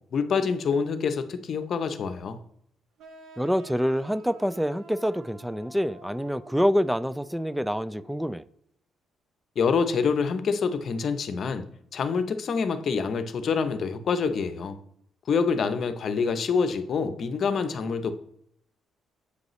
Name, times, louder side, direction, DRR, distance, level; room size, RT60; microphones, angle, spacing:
voice 1, 0.1-2.4 9.6-11.7 11.9-14.8 15.3-18.1, left 5 dB, 55° left, 10 dB, 0.7 m, -26 dB
sound 1, 3.0-8.5, right 3 dB, 75° right, 1.1 m, -50 dB
voice 2, 3.4-8.4, equal, 5° right, 18 dB, 0.3 m, -26 dB
8.0 x 5.3 x 3.1 m, 0.71 s
cardioid pair, 90°, 0 cm